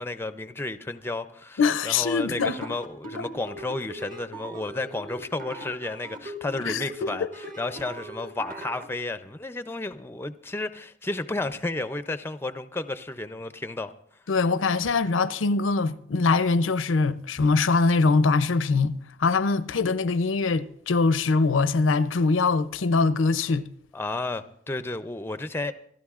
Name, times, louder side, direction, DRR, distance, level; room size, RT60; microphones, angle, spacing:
voice 1, 0.0-13.9 17.4-17.5 23.9-25.7, left 2 dB, 10° left, 0.4 m, -32 dB
voice 2, 1.6-2.6 6.6-7.3 14.3-23.7, left 4 dB, 85° left, 0.6 m, -23 dB
sound 1, 2.3-8.9, right 2 dB, 45° right, 1.4 m, -40 dB
28.0 x 12.0 x 2.4 m
head